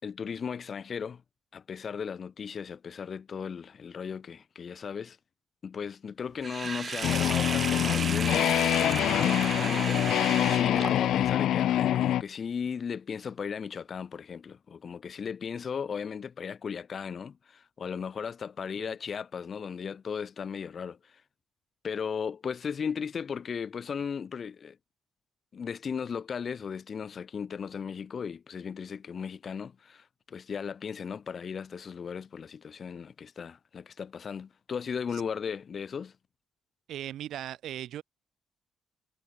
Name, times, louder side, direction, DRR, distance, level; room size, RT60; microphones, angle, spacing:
voice 1, 0.0-1.2 1.5-5.2 5.6-8.5 9.0-21.2 21.8-24.8 25.5-36.1, left 6 dB, 45° left, 2.9 m, -36 dB
Sink (filling or washing), 6.4-11.3, right 5 dB, 40° right, 5.2 m, -34 dB
sound 1, 7.0-12.2, left 12 dB, 80° left, 0.3 m, -25 dB
voice 2, 36.9-38.0, right 12 dB, 75° right, 4.6 m, -38 dB
cardioid pair, 90°, 0 cm